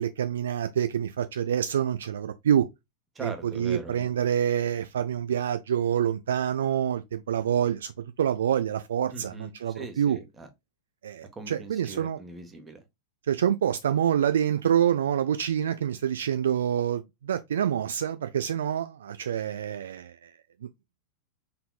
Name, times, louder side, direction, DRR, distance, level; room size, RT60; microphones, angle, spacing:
voice 1, 0.0-2.7 3.2-7.9 8.2-10.2 11.0-12.2 13.3-20.3 20.6-20.7, right 9 dB, 65° right, 0.4 m, -27 dB
voice 2, 3.1-4.1 9.1-10.5 11.3-12.8, right 3 dB, 20° right, 1.4 m, -41 dB
5.7 x 3.6 x 2.2 m
figure-of-eight pair, 90°, 0 cm